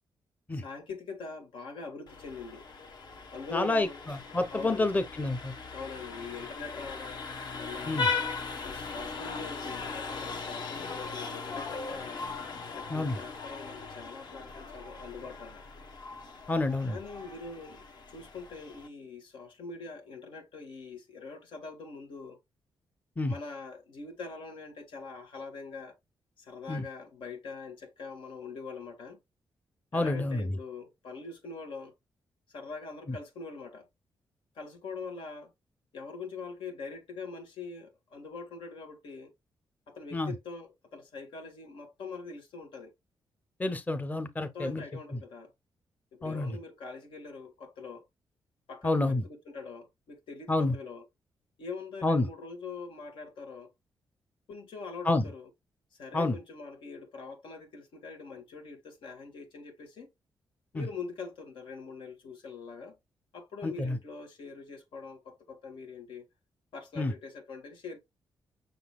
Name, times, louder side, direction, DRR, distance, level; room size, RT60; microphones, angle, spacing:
voice 1, 0.6-2.6 3.3-4.0 4.5-4.9 5.7-7.3 7.5-8.1 8.6-12.2 12.7-15.6 16.9-22.4 23.3-26.0 26.4-29.2 29.9-31.9 32.5-33.9 34.6-35.5 35.9-39.3 39.9-42.9 44.4-45.5 46.1-48.1 48.7-51.1 51.6-53.7 54.5-55.5 56.0-60.1 60.7-63.0 63.3-66.3 66.7-68.0, left 4 dB, 85° left, 1.7 m, -43 dB
Vehicle horn car horn honking, 2.1-18.9, left 4 dB, 60° left, 1.2 m, -39 dB
voice 2, 3.5-5.5 7.9-8.1 12.9-13.2 16.5-17.0 23.2-23.3 26.7-26.8 29.9-30.5 33.1-33.2 40.1-40.3 43.6-44.8 46.2-46.5 48.8-49.2 50.5-50.7 52.0-52.3 55.1-55.3 56.1-56.4 60.7-60.9 63.6-64.0 67.0-67.1, left 2 dB, 20° left, 0.8 m, -28 dB
5.9 x 3.9 x 2.3 m
cardioid pair, 100°, 8 cm